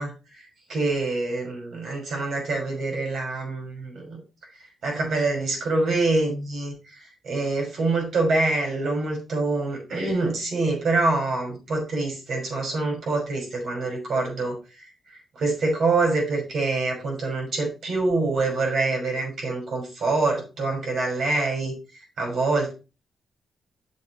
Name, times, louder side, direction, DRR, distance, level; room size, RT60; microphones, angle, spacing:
voice 1, 0.0-4.2 4.8-22.7, right 3 dB, 60° right, 1 dB, 5.8 m, -26 dB
8.1 x 6.8 x 4.3 m, 0.31 s
cardioid pair, 130°, 0 cm